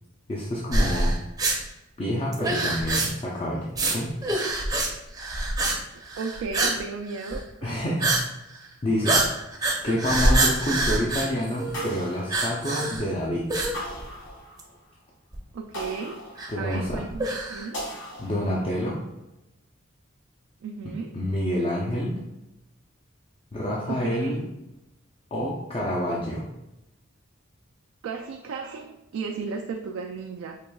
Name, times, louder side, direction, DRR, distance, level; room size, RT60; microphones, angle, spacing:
voice 1, 0.3-1.2 2.0-4.1 7.6-8.2 8.8-9.2 9.8-13.5 16.5-17.1 18.2-19.0 21.1-22.2 23.5-24.4 25.3-26.5, equal, 30° left, -4 dB, 0.4 m, -28 dB
sound 1, 0.7-1.6 2.3-3.3 3.7-4.0 4.2-4.9 5.2-5.8 6.0-6.8 7.1-7.4 8.0-8.2 8.5-8.7 9.0-11.9 12.3-13.1 13.5-14.3 14.6-14.7 15.3-15.4 16.4-17.7, right 2 dB, 20° right, 0.6 m, -25 dB
voice 2, 6.2-7.8 15.5-16.2 16.6-17.8 20.6-21.1 23.9-24.4 28.0-30.6, right 5 dB, 85° right, 2 dB, 0.3 m, -34 dB
sound 2, 11.7-13.1 13.7-14.9 15.7-17.0 17.7-18.9, equal, 65° left, 1.5 m, -39 dB
4.8 x 2.9 x 2.3 m, 0.94 s
head